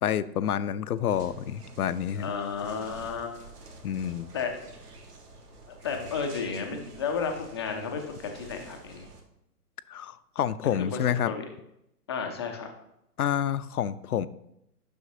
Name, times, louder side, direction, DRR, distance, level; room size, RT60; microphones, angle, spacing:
voice 1, 0.0-2.3 3.8-4.3 9.9-11.3 13.2-14.3, left 9 dB, 70° left, 16 dB, 0.6 m, -28 dB
sound 1, 1.1-9.2, right 3 dB, 70° right, 1.6 m, -48 dB
voice 2, 2.2-3.4 4.3-4.7 5.7-9.1 10.8-11.4 12.1-12.7, left 5 dB, 20° left, 4 dB, 0.5 m, -33 dB
10.0 x 6.3 x 2.8 m, 0.80 s
figure-of-eight pair, 125°, 47 cm